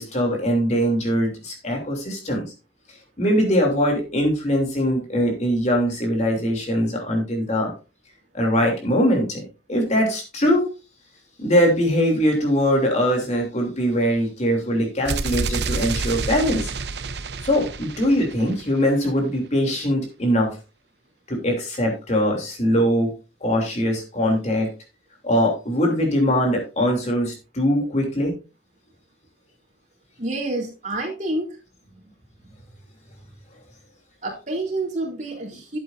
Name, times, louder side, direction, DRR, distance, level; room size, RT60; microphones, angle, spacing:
voice 1, 0.0-2.4 3.2-7.7 8.3-9.4 9.7-10.7 11.4-16.7 17.4-20.6 21.3-23.1 23.4-24.7 25.2-28.3, equal, 40° left, 1 dB, 3.1 m, -21 dB
sound 1, 15.0-18.9, right 4 dB, 70° right, 0.8 m, -28 dB
voice 2, 30.2-31.6 34.2-35.8, right 2 dB, 45° right, -2 dB, 3.7 m, -28 dB
12.5 x 8.4 x 2.7 m, 0.30 s
head